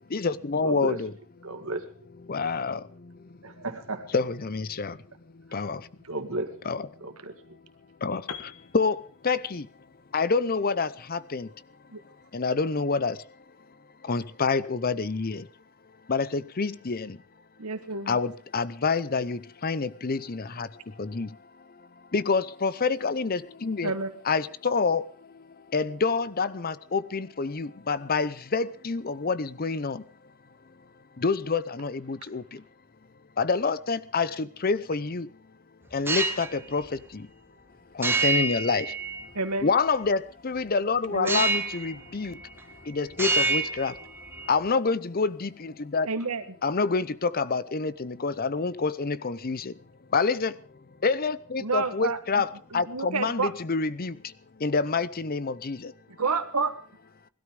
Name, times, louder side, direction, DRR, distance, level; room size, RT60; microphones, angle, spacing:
voice 1, 0.1-1.1 2.3-2.8 4.1-5.0 5.5-5.8 6.6-6.9 8.0-8.2 8.7-9.7 10.1-11.5 12.3-13.2 14.1-15.4 16.1-17.2 18.1-20.7 21.0-21.3 22.1-23.9 24.2-25.1 25.7-30.0 31.2-32.4 33.4-35.3 35.9-37.3 38.0-38.9 39.6-42.3 42.9-43.9 44.5-46.1 46.6-49.7 50.1-50.5 51.0-54.2 54.6-55.9, left 4 dB, 40° left, 0.7 m, -27 dB
voice 2, 0.6-1.0 1.4-1.8 3.4-4.1 6.1-6.5 7.0-7.3, right 2 dB, 65° right, 2.4 m, -33 dB
Piano, 8.3-12.2, left 7 dB, 90° left, 1.6 m, -46 dB
voice 3, 17.6-18.2 23.8-24.1 39.3-39.7 41.1-41.4 46.1-46.4 51.6-52.4 52.7-53.5 56.2-56.7, right 4 dB, 85° right, 1.5 m, -29 dB
sound 1, 35.9-36.5 38.0-39.5 41.3-42.0 42.3-42.8 43.1-44.5, right 3 dB, 10° right, 1.6 m, -27 dB
20.5 x 13.0 x 5.1 m
head